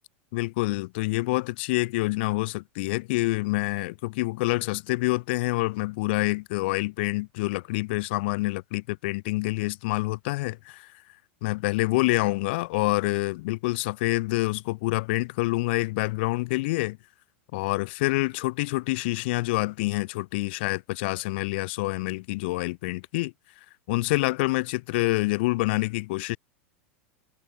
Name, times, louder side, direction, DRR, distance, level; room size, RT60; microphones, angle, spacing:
voice 1, 0.3-10.9 11.4-17.0 17.5-23.3 23.9-26.4, left 22 dB, 55° left, 2.5 m, -27 dB
figure-of-eight pair, 90°, 7 cm